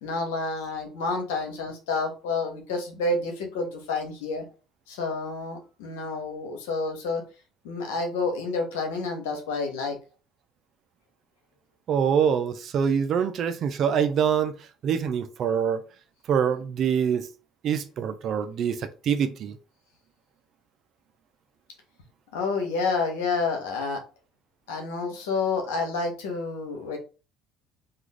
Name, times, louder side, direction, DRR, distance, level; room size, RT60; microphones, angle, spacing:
voice 1, 0.0-4.4 4.9-7.2 7.6-10.0 22.3-24.0 24.7-27.0, left 3 dB, 90° left, 0.8 m, -29 dB
voice 2, 11.9-14.5 14.8-15.8 16.3-17.3 17.6-19.6, right 7 dB, 55° right, 0.4 m, -25 dB
2.4 x 2.3 x 3.2 m
supercardioid pair, 80°, 0 cm